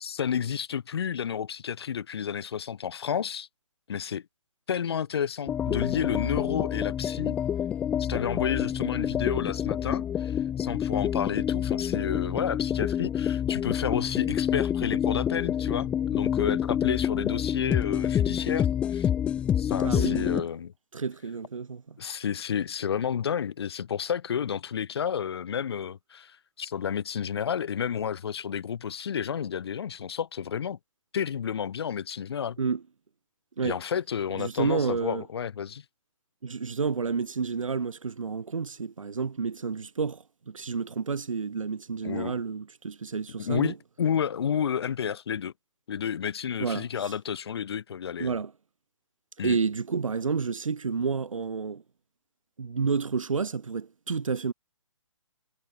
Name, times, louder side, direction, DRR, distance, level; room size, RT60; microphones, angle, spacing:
voice 1, 0.0-3.5 3.9-4.2 4.7-7.4 8.0-19.1 19.6-20.7 22.0-30.8 31.1-32.6 33.6-35.8 42.0-42.4 43.4-45.5 45.9-48.4 49.4-49.6, left 8 dB, 50° left, 1.8 m, -31 dB
sound 1, 5.5-20.4, left 9 dB, 5° left, 0.6 m, -27 dB
voice 2, 19.8-20.5 20.9-22.0 32.6-32.8 33.6-33.8 34.4-35.2 36.4-43.7 46.6-47.1 48.2-48.5 49.4-51.8 52.6-54.5, right 5 dB, 85° right, 3.7 m, -30 dB
hypercardioid pair, 165°, 17 cm